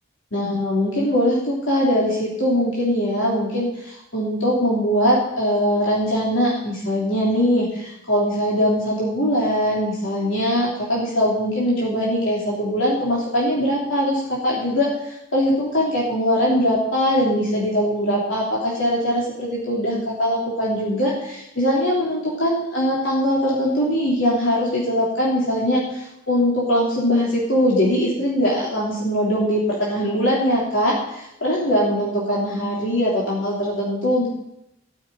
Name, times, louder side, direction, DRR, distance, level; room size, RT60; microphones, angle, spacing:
voice 1, 0.3-34.3, equal, 65° left, -5 dB, 3.4 m, -21 dB
13.0 x 7.3 x 9.2 m, 0.84 s
head